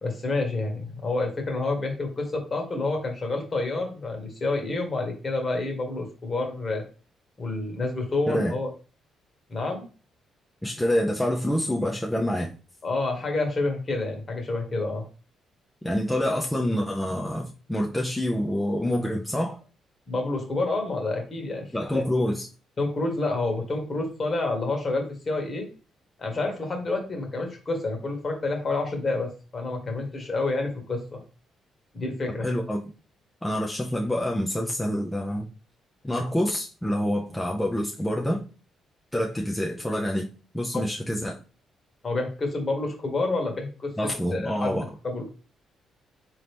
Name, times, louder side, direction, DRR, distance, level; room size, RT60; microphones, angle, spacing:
voice 1, 0.0-6.8 7.4-8.7 9.5-9.9 12.8-15.0 20.1-21.6 21.9-22.0 22.8-25.7 26.2-31.2 31.9-32.4 40.7-40.8 42.0-43.9 44.3-44.8 45.0-45.2, left 2 dB, 40° left, 1.5 m, -28 dB
voice 2, 10.6-12.5 15.8-19.6 21.7-22.5 32.4-32.8 33.4-35.5 36.0-38.4 39.1-40.3 40.5-41.4 44.0-44.9, equal, 10° left, 0.6 m, -27 dB
3.9 x 3.0 x 3.4 m
cardioid pair, 90°, 0 cm